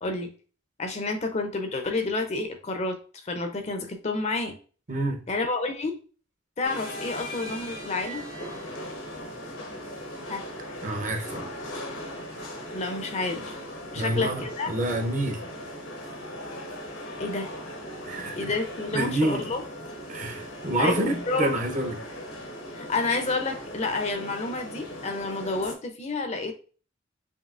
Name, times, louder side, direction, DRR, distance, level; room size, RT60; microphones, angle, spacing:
voice 1, 0.8-4.6 5.3-6.0 6.6-8.2 10.3-10.4 12.7-13.6 13.9-14.7 17.2-17.5 18.3-19.6 20.8-21.5 22.7-26.5, left 3 dB, 35° left, 0.5 m, -29 dB
voice 2, 4.9-5.2 10.8-11.5 14.0-15.4 18.1-18.4 18.9-19.4 20.1-22.0, right 1 dB, 40° right, 0.7 m, -28 dB
sound 1, 6.6-25.7, equal, 85° left, 1.1 m, -39 dB
5.4 x 2.8 x 2.4 m
head